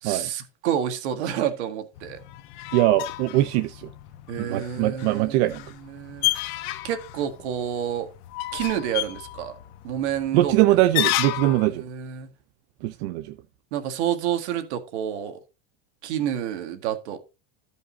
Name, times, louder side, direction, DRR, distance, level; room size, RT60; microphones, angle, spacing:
voice 1, 0.0-2.2 4.3-5.5 5.9-6.6 6.8-8.1 8.5-9.6 9.8-10.8 11.4-12.3 13.7-15.4 16.0-17.2, right 10 dB, 90° right, 1.9 m, -29 dB
sound 1, 2.0-11.7, left 17 dB, 60° left, 0.9 m, -32 dB
voice 2, 2.7-3.9 4.4-5.6 10.3-11.8 12.8-13.3, right 16 dB, 70° right, 0.7 m, -22 dB
13.5 x 5.4 x 3.9 m
supercardioid pair, 160°, 33 cm